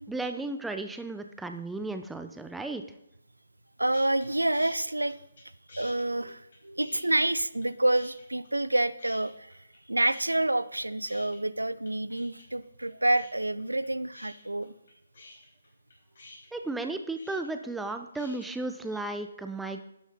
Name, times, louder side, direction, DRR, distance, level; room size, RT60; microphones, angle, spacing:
voice 1, 0.1-2.8 16.5-19.8, right 2 dB, 5° right, 7 dB, 0.6 m, -34 dB
voice 2, 3.8-5.1 5.8-9.5 9.9-14.7, right 1 dB, 90° right, 16 dB, 0.5 m, -28 dB
sound 1, 3.9-4.3 4.5-5.4 5.7-7.7 7.9-8.7 9.0-9.8 10.0-18.5, left 2 dB, 55° left, 4.9 m, -50 dB
12.0 x 6.5 x 5.1 m, 0.81 s
figure-of-eight pair, 145°, 0 cm